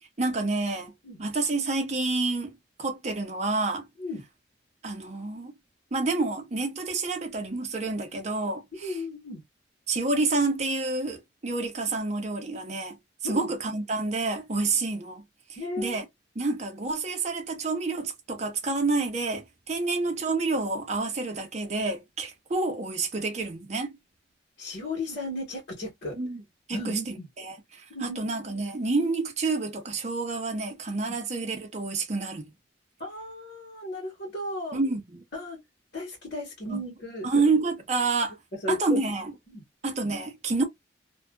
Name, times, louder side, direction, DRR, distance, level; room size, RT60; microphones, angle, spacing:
voice 1, 0.2-0.9 1.2-3.9 4.8-5.5 5.9-9.0 9.9-13.0 13.2-15.2 15.8-16.0 16.4-24.0 26.1-26.4 26.7-27.2 27.4-32.5 34.7-35.2 36.7-36.8 37.2-38.4 38.7-39.3 39.8-40.6, right 3 dB, 35° right, 0.7 m, -28 dB
voice 2, 8.8-9.4 13.2-13.5 15.6-16.0 24.6-26.1 26.7-27.2 27.9-28.2 31.1-31.2 33.0-34.8 35.3-35.6 35.9-37.3 38.6-39.0 39.5-39.6, left 1 dB, 55° left, 1.3 m, -34 dB
2.6 x 2.2 x 2.2 m
head